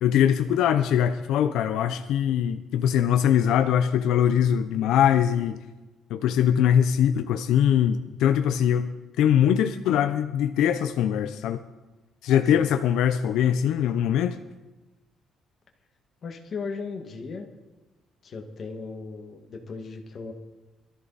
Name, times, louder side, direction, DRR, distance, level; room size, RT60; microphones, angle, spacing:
voice 1, 0.0-5.6 6.1-8.9 9.2-11.6 12.2-14.4, left 9 dB, 80° left, 8 dB, 0.7 m, -22 dB
voice 2, 16.2-17.5 18.2-20.3, left 4 dB, 35° left, 3 dB, 1.9 m, -36 dB
22.0 x 13.5 x 4.2 m, 1.2 s
cardioid pair, 180°, 0 cm